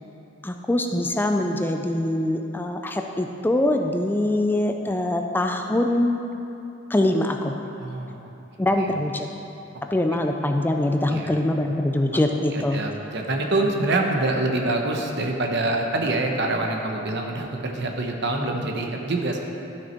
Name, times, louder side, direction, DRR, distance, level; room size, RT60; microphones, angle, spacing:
voice 1, 0.4-6.2 6.9-7.6 8.6-9.3 9.9-12.8, left 1 dB, 10° left, 4 dB, 0.4 m, -23 dB
voice 2, 7.8-8.2 8.8-8.9 11.1-11.4 12.5-19.4, right 2 dB, 60° right, 2 dB, 1.0 m, -25 dB
12.5 x 6.2 x 4.4 m, 2.8 s
head